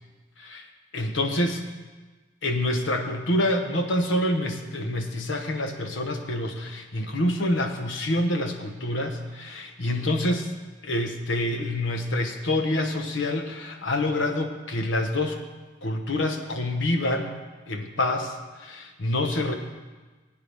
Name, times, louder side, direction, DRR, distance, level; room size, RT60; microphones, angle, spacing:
voice 1, 0.9-1.7 2.4-10.5 10.8-15.4 15.8-17.4 17.7-19.5, left 1 dB, 80° left, 5 dB, 1.2 m, -27 dB
20.0 x 9.1 x 3.5 m, 1.3 s
head